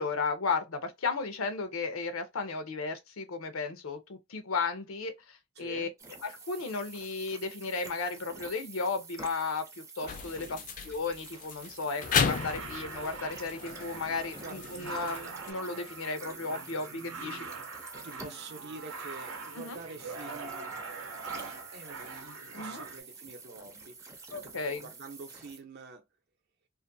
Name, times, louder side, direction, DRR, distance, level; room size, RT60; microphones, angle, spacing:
voice 1, 0.0-5.9 6.2-9.6 10.0-10.6 10.8-17.5 19.5-19.8 22.5-22.8 24.3-24.8, left 4 dB, 90° left, 0.6 m, -34 dB
voice 2, 5.6-5.9 10.4-10.7 14.4-14.7 18.0-20.7 21.7-22.0 22.5-24.0 24.3-26.0, right 3 dB, 55° right, 0.6 m, -46 dB
sound 1, 6.0-25.6, right 4 dB, 15° right, 0.5 m, -49 dB
sound 2, 10.1-15.5, left 6 dB, 40° left, 0.3 m, -34 dB
sound 3, 12.0-23.0, right 4 dB, 90° right, 0.7 m, -43 dB
2.5 x 2.5 x 2.6 m
head